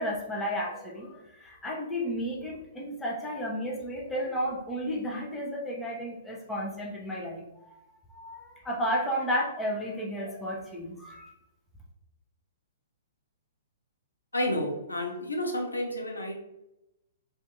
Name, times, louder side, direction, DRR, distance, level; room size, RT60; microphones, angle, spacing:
voice 1, 0.0-7.7 8.1-11.3, equal, 10° left, -3 dB, 0.8 m, -33 dB
voice 2, 14.3-16.3, left 1 dB, 85° left, 1 dB, 0.7 m, -30 dB
2.7 x 2.6 x 3.6 m, 0.90 s
figure-of-eight pair, 115°, 0 cm